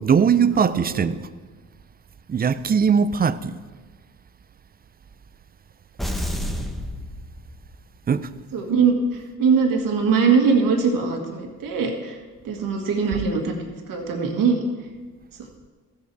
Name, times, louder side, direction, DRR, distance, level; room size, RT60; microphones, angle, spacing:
voice 1, 0.0-1.3 2.3-3.6 8.1-8.3, right 6 dB, 25° right, 0.4 m, -20 dB
voice 2, 0.6-1.1 8.5-12.2 12.4-13.6 13.9-14.6, right 5 dB, 70° right, 1.7 m, -21 dB
sound 1, 6.0-7.9, equal, ahead, 1.0 m, -30 dB
15.0 x 7.0 x 4.7 m
cardioid pair, 100°, 35 cm